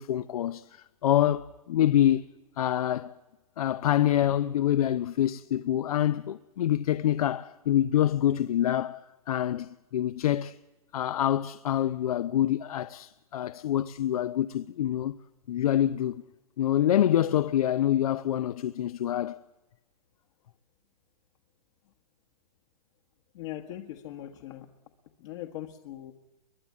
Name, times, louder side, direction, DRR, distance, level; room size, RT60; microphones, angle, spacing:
voice 1, 0.0-2.2 2.6-3.2 3.6-9.0 9.3-10.6 10.9-15.1 15.5-16.2 16.6-19.4, left 11 dB, 70° left, 0.7 m, -26 dB
voice 2, 23.3-24.7 25.2-26.1, left 13 dB, 50° left, 1.6 m, -40 dB
23.0 x 20.0 x 8.5 m
hypercardioid pair, 140°, 19 cm